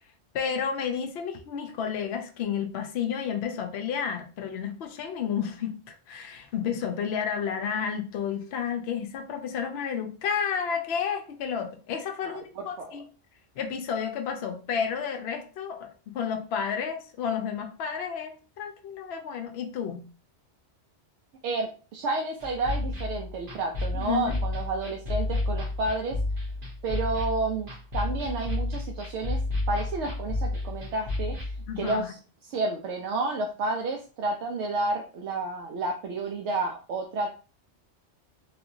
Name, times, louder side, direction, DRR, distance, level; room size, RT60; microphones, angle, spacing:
voice 1, 0.3-13.1 13.6-15.9 16.1-20.0 23.9-24.4 31.7-32.1, left 7 dB, 70° left, 5 dB, 0.8 m, -31 dB
voice 2, 12.2-12.9 21.4-26.2 26.8-29.4 29.7-32.2 32.4-37.3, right 3 dB, 80° right, 2 dB, 0.9 m, -31 dB
sound 1, 22.4-32.0, left 2 dB, 50° right, 1.2 m, -31 dB
3.3 x 2.8 x 2.6 m, 0.36 s
omnidirectional pair, 1.2 m